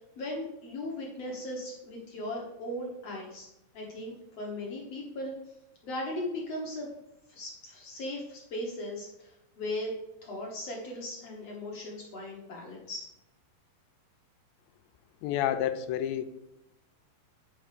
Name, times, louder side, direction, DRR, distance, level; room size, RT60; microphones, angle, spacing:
voice 1, 0.0-3.5 3.7-5.3 5.8-6.9 7.3-9.9 10.2-13.0, left 1 dB, 65° left, -2 dB, 1.6 m, -38 dB
voice 2, 15.2-16.2, left 11 dB, 85° left, 10 dB, 2.8 m, -29 dB
10.0 x 5.8 x 5.1 m, 0.90 s
omnidirectional pair, 5.1 m